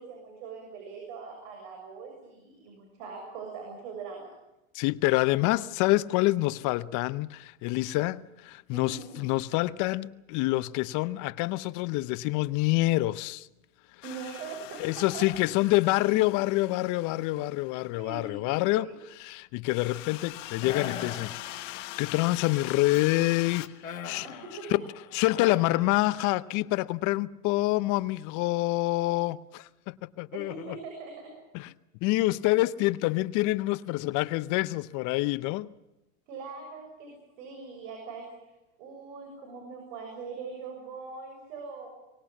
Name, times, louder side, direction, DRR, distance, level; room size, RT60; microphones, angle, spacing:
voice 1, 0.0-4.3 8.7-9.2 14.0-15.7 18.0-19.0 24.2-24.8 30.3-31.4 36.3-38.5 38.8-41.9, right 4 dB, 65° right, 7.1 m, -42 dB
voice 2, 4.7-13.5 14.8-18.9 19.2-21.4 21.6-24.3 24.7-24.8 25.1-30.5 31.5-31.7 32.0-35.7, left 19 dB, 50° left, 0.8 m, -27 dB
sound 1, 14.0-17.9 19.6-23.7, left 16 dB, 65° left, 1.5 m, -43 dB
sound 2, 20.6-22.2 23.8-26.5, left 8 dB, 90° left, 2.3 m, -41 dB
24.0 x 20.5 x 7.4 m
hypercardioid pair, 110°, 40 cm